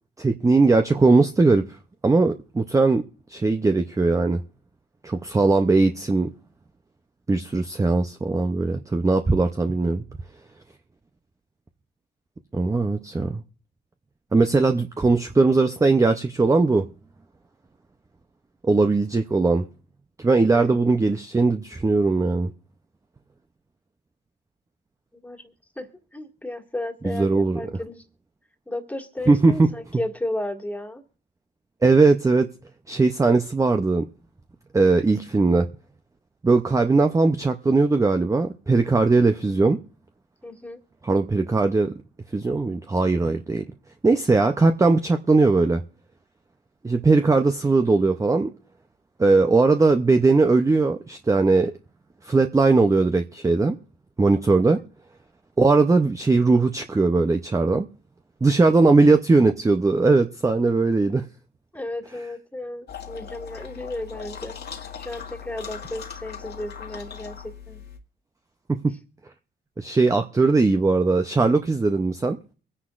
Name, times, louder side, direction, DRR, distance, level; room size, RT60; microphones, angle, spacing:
voice 1, 0.2-1.7 2.0-3.0 3.3-4.4 5.0-6.3 7.3-10.0 12.5-13.4 14.3-16.9 18.6-19.7 20.2-22.5 27.0-27.7 29.3-29.7 31.8-32.5 32.9-34.1 34.7-35.7 36.4-39.8 41.0-41.9 42.3-43.6 44.0-45.8 46.8-48.5 49.2-51.7 52.2-53.8 54.2-54.8 55.6-57.9 58.4-61.3 69.8-72.4, right 3 dB, 15° right, 0.6 m, -19 dB
voice 2, 20.5-20.8 25.2-28.0 28.7-31.0 40.4-40.8 61.7-67.8, left 1 dB, 10° left, 1.9 m, -34 dB
sound 1, 62.9-68.0, left 7 dB, 55° left, 1.7 m, -39 dB
23.5 x 9.8 x 2.5 m
cardioid pair, 90°, 20 cm